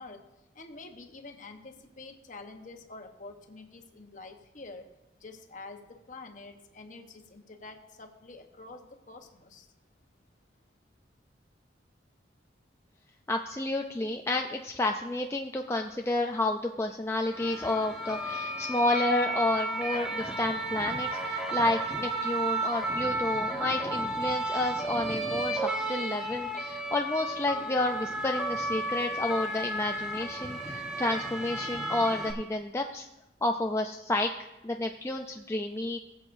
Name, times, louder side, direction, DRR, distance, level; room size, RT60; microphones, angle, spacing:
voice 1, 0.0-4.9 5.2-9.7, left 3 dB, 45° left, 4 dB, 1.1 m, -47 dB
voice 2, 13.3-33.1 33.4-34.3 34.6-36.0, left 2 dB, 15° left, 3 dB, 0.4 m, -30 dB
sound 1, 17.2-32.3, right 1 dB, 5° right, 1.2 m, -33 dB
Wind instrument woodwind instrument, 19.1-23.0, right 5 dB, 85° right, 1.4 m, -41 dB
19.5 x 7.9 x 2.6 m, 0.97 s
head